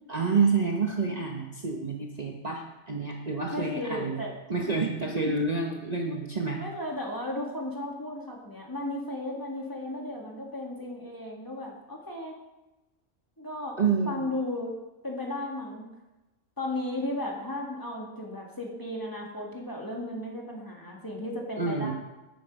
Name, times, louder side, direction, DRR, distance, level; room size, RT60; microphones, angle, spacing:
voice 1, 0.1-4.2 4.5-6.6 13.8-14.2 21.6-21.9, right 4 dB, 35° right, 0 dB, 1.0 m, -28 dB
voice 2, 3.5-4.3 5.3-5.4 6.0-6.2 6.6-12.4 13.4-13.8 14.1-14.8 15.0-15.9 16.6-21.9, left 1 dB, 15° left, -1 dB, 1.8 m, -35 dB
9.3 x 8.8 x 5.2 m, 1.0 s
omnidirectional pair, 1.4 m